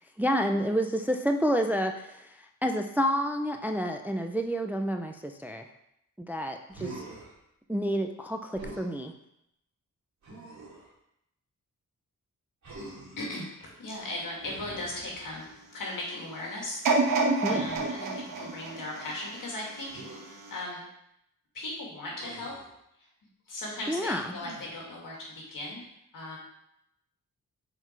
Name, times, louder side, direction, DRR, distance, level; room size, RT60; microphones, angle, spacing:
voice 1, 0.2-2.3 2.6-5.6 6.2-6.9 7.7-9.1 17.3-17.7 23.9-24.3, equal, 5° right, 5 dB, 0.3 m, -29 dB
Human voice, 6.7-7.3 8.5-8.9 10.2-10.9 12.6-13.3 14.4-15.6 17.7-17.9 19.9-20.2 22.2-22.7 24.3-24.8, right 2 dB, 60° right, 2.3 m, -44 dB
voice 2, 13.2-16.8 17.5-20.8 21.5-22.5 23.5-25.8 26.1-26.4, left 1 dB, 75° left, -3 dB, 2.2 m, -38 dB
sound 1, 16.8-19.9 20.5-20.6, right 3 dB, 80° right, 1.1 m, -28 dB
5.9 x 4.5 x 4.5 m, 0.80 s
wide cardioid pair, 120°, 33 cm